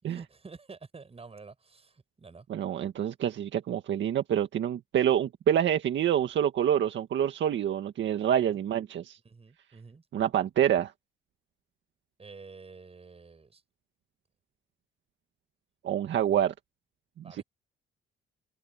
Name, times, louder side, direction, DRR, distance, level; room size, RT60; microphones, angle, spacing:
voice 1, 0.1-2.5 8.1-8.6 9.2-10.0 12.2-13.6 16.1-16.4 17.2-17.4, right 4 dB, 30° right, 7.5 m, -49 dB
voice 2, 2.5-9.2 10.1-10.9 15.8-16.5 17.3-17.4, right 10 dB, 70° right, 1.8 m, -27 dB
open air
cardioid pair, 90°, 20 cm